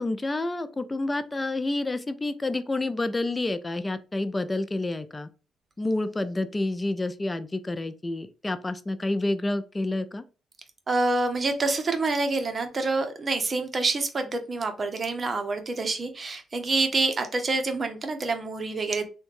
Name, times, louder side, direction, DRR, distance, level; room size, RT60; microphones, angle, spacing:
voice 1, 0.0-5.3 5.8-10.2, left 2 dB, 20° left, 0.4 m, -29 dB
voice 2, 10.9-19.1, right 3 dB, 35° right, 0.7 m, -27 dB
3.5 x 2.2 x 3.1 m
cardioid pair, 90°, 0 cm